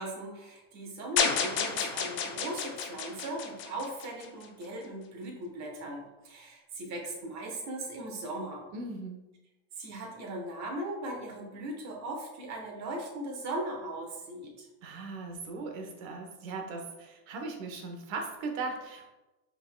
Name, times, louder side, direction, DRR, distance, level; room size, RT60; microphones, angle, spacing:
voice 1, 0.0-8.6 9.8-14.7, right 1 dB, 40° right, 1 dB, 1.1 m, -38 dB
sound 1, 1.2-4.5, left 6 dB, 30° left, 0.5 m, -31 dB
voice 2, 8.7-9.2 14.8-19.1, right 3 dB, 75° right, 3 dB, 1.0 m, -38 dB
5.4 x 3.6 x 2.2 m, 1.0 s
supercardioid pair, 125°, 41 cm